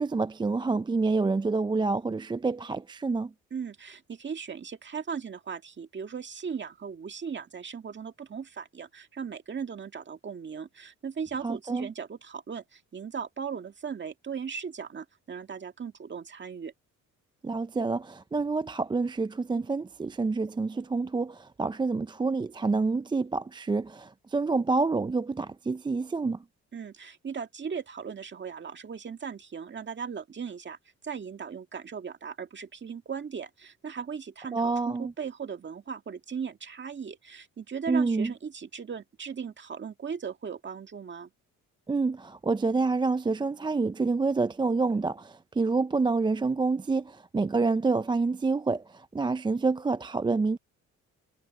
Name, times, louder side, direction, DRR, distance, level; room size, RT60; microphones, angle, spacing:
voice 1, 0.0-3.3 11.4-11.9 17.4-26.4 34.5-35.1 37.9-38.3 41.9-50.6, right 3 dB, 15° right, 0.4 m, -27 dB
voice 2, 3.5-16.7 26.7-30.8 31.0-41.3, right 6 dB, 40° right, 1.9 m, -38 dB
cardioid pair, 90°, 30 cm